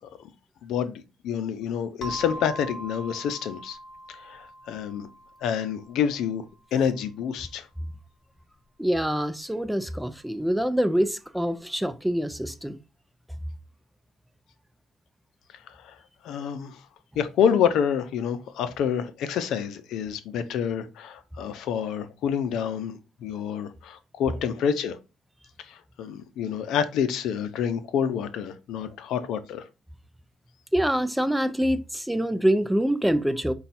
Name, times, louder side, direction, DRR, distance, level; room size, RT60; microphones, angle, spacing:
voice 1, 0.6-3.8 4.2-5.1 5.4-6.4 6.7-7.7 15.8-15.9 16.2-16.8 17.2-25.0 25.7-29.6, left 8 dB, 80° left, 0.5 m, -28 dB
sound 1, 2.0-6.4, equal, 55° left, 1.0 m, -41 dB
voice 2, 8.8-12.8 30.7-33.5, equal, 5° right, 0.4 m, -25 dB
5.1 x 2.3 x 4.2 m
cardioid pair, 90°, 0 cm